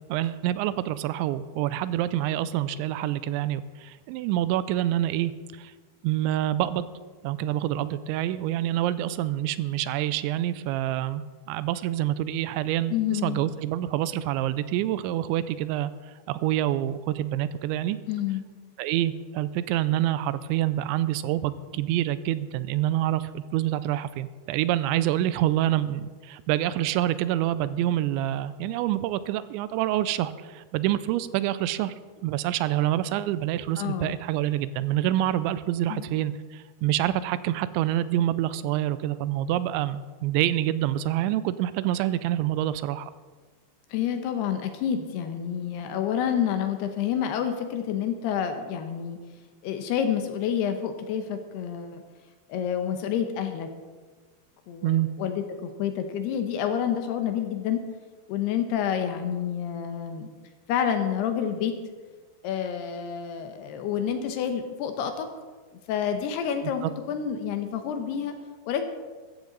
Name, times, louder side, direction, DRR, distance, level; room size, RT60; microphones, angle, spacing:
voice 1, 0.1-5.3 5.6-5.7 6.0-6.9 7.2-15.9 16.3-18.0 18.8-31.9 32.2-43.1 54.8-55.1 66.8-66.9, right 13 dB, 85° right, 15 dB, 2.9 m, -27 dB
voice 2, 12.9-13.4 18.1-18.4 33.8-34.1 35.9-36.0 43.9-49.2 49.6-52.0 52.5-53.7 54.7-57.8 58.3-60.3 60.7-61.7 62.4-65.3 65.9-68.3 68.7-68.9, left 8 dB, 75° left, 7 dB, 2.7 m, -28 dB
14.5 x 14.5 x 4.0 m, 1.4 s
omnidirectional pair, 5.2 m